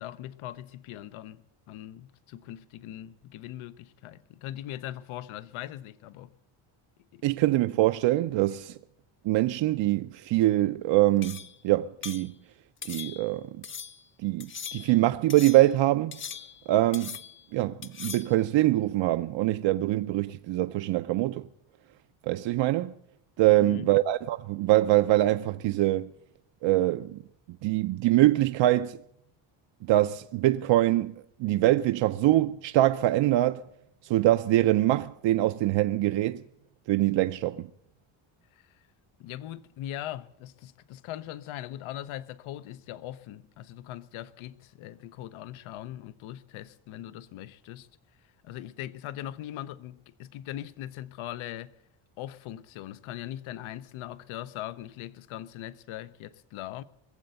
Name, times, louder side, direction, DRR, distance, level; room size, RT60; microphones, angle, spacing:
voice 1, 0.0-6.3 7.1-7.2 23.4-23.9 38.5-38.8 39.2-47.9 48.4-51.7 52.2-56.8, left 13 dB, 90° left, 0.7 m, -40 dB
voice 2, 7.2-8.8 9.2-12.3 12.9-13.6 14.2-16.2 16.7-17.2 17.5-21.5 22.2-22.9 23.4-26.1 26.6-27.2 27.6-29.0 29.8-33.6 34.0-36.4 36.9-37.7, right 15 dB, 70° right, 0.5 m, -24 dB
sound 1, 11.2-11.6 12.0-12.3 12.8-13.3 13.6-14.0 14.4-15.0 15.3-15.7 16.1-16.7 16.9-17.5 17.8-18.4, left 7 dB, 25° left, 0.5 m, -40 dB
20.5 x 7.8 x 8.0 m
cardioid pair, 150°, 47 cm